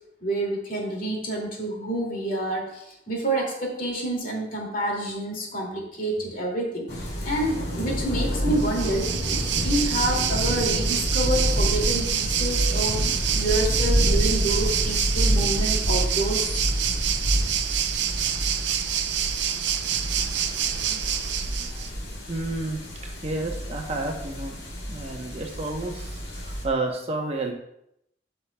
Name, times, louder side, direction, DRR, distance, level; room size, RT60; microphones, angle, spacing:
voice 1, 0.2-16.6, right 1 dB, 50° left, -2 dB, 2.4 m, -28 dB
sound 1, 6.9-26.6, equal, 65° left, 2.4 m, -28 dB
Waves surf, 8.6-21.9, right 9 dB, 70° right, 0.6 m, -27 dB
voice 2, 20.7-21.1 21.5-21.8 22.3-27.5, right 2 dB, 35° right, 2 dB, 0.9 m, -31 dB
13.0 x 5.7 x 2.3 m, 0.78 s
head